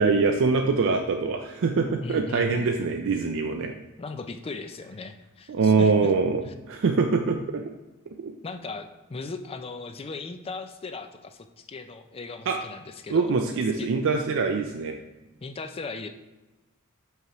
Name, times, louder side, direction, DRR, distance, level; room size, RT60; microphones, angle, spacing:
voice 1, 0.0-3.7 5.5-6.4 6.7-7.6 8.2-8.3 12.5-12.6 13.1-15.0, right 4 dB, 60° right, 4 dB, 0.4 m, -23 dB
voice 2, 2.0-2.7 4.0-6.1 8.4-13.3 13.8-13.9 15.4-16.1, left 3 dB, 25° left, 9 dB, 0.4 m, -38 dB
5.9 x 5.6 x 3.0 m, 1.1 s
head